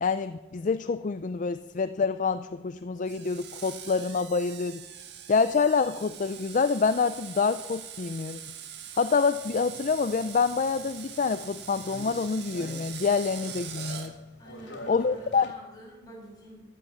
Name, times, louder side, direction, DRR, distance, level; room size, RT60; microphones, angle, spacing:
voice 1, 0.0-4.8 5.3-8.4 9.0-14.1 14.9-15.5, left 5 dB, 45° left, 12 dB, 0.4 m, -27 dB
Screech, 3.0-14.1, right 9 dB, 65° right, 1.6 m, -43 dB
sound 1, 9.4-15.5, left 1 dB, 70° left, 3.1 m, -46 dB
voice 2, 14.4-16.6, right 1 dB, 20° left, -3 dB, 6.8 m, -48 dB
13.5 x 11.0 x 7.3 m, 1.1 s
head